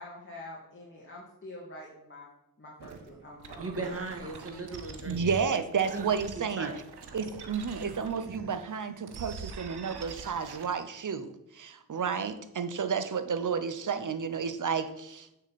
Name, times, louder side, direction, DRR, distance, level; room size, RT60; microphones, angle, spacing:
voice 1, 0.0-2.2 2.6-3.8, left 1 dB, 30° left, -4 dB, 2.3 m, -46 dB
sound 1, 2.8-8.6 9.0-10.7, right 4 dB, 90° right, 0.9 m, -44 dB
voice 2, 3.6-5.6 5.9-6.1 6.4-6.7, right 3 dB, 35° right, 2 dB, 1.9 m, -38 dB
voice 3, 5.1-6.7 7.1-15.3, right 6 dB, 55° right, 11 dB, 0.9 m, -31 dB
8.5 x 6.6 x 4.2 m, 0.87 s
cardioid pair, 50°, 38 cm